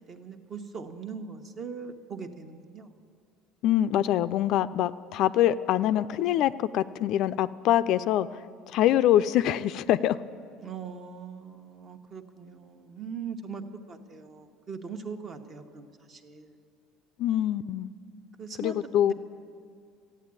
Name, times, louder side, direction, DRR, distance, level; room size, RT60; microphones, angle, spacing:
voice 1, 0.1-2.9 10.6-16.6 18.4-18.8 19.0-19.1, right 5 dB, 35° right, 7 dB, 1.1 m, -40 dB
voice 2, 3.6-8.4 8.7-10.2 17.2-17.9 18.6-19.1, left 12 dB, 60° left, 13 dB, 0.4 m, -24 dB
14.0 x 8.6 x 9.6 m, 2.2 s
supercardioid pair, 115°, 0 cm